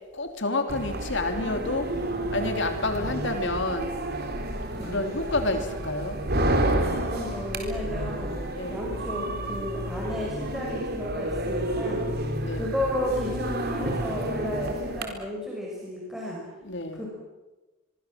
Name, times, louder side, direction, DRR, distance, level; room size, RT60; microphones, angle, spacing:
voice 1, 0.1-1.9 2.3-3.9 4.8-6.2 8.5-8.9 12.4-12.7 16.6-17.1, left 2 dB, 60° left, 6 dB, 3.3 m, -29 dB
sound 1, 0.7-15.0, right 1 dB, 50° right, 4.1 m, -30 dB
voice 2, 4.7-5.0 7.0-12.1 12.5-16.4 17.0-17.1, left 1 dB, ahead, -4 dB, 5.6 m, -33 dB
25.5 x 23.5 x 7.6 m, 1.1 s
head